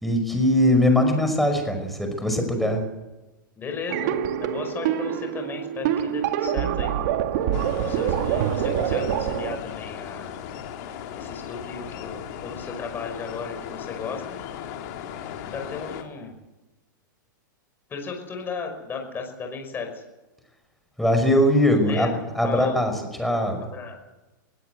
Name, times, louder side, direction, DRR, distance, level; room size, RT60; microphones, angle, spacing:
voice 1, 0.0-2.8 21.0-22.1 22.4-22.9 23.2-23.7, left 1 dB, ahead, 4 dB, 5.5 m, -21 dB
voice 2, 3.6-10.3 11.2-14.4 15.5-16.3 17.9-20.0 21.7-22.8 23.6-24.1, left 4 dB, 20° left, 3 dB, 5.5 m, -35 dB
sound 1, 3.9-9.6, right 10 dB, 55° right, 2.1 m, -25 dB
sound 2, 7.5-16.0, left 9 dB, 55° left, 4.1 m, -37 dB
22.5 x 17.0 x 8.1 m, 1.1 s
hypercardioid pair, 135°, 11 cm